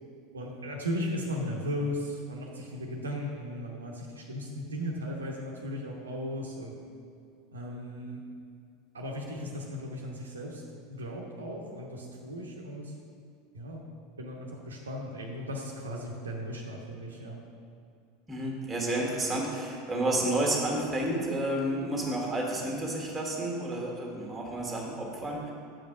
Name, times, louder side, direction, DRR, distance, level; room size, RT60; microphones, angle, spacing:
voice 1, 0.3-6.7 7.5-8.2 8.9-10.6 10.9-12.9 13.5-13.8 14.2-17.4, equal, 75° right, -1 dB, 0.9 m, -36 dB
voice 2, 18.3-25.5, right 1 dB, 10° right, -1 dB, 1.7 m, -30 dB
7.4 x 5.2 x 6.0 m, 2.5 s
figure-of-eight pair, 80°, 0 cm